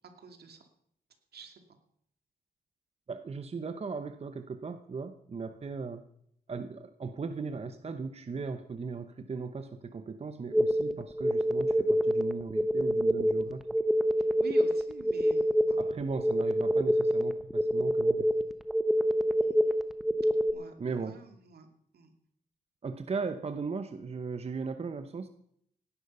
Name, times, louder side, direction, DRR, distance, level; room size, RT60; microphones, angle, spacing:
voice 1, 0.2-0.6 1.3-1.5 14.4-15.8 19.4-19.5 20.5-21.7 21.9-22.1, right 4 dB, 70° right, 6 dB, 2.6 m, -48 dB
voice 2, 3.1-6.0 6.5-13.7 15.8-18.3 20.8-21.2 22.8-25.3, right 4 dB, 40° right, 9 dB, 0.9 m, -37 dB
sound 1, 10.5-20.5, equal, ahead, 1.0 m, -26 dB
17.5 x 11.5 x 5.6 m, 0.69 s
cardioid pair, 100°, 17 cm